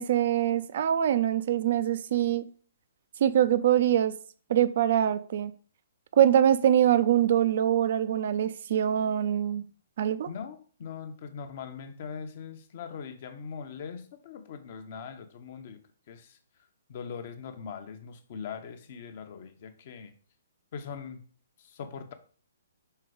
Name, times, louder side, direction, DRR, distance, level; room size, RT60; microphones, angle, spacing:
voice 1, 0.0-2.5 3.2-4.1 4.5-5.5 6.2-9.7 10.0-10.3, right 10 dB, 50° right, 0.5 m, -24 dB
voice 2, 10.3-15.8 16.1-16.4 16.9-20.2 20.7-21.2 21.6-22.1, left 6 dB, 45° left, 0.8 m, -41 dB
5.6 x 3.8 x 4.9 m
figure-of-eight pair, 125°, 0 cm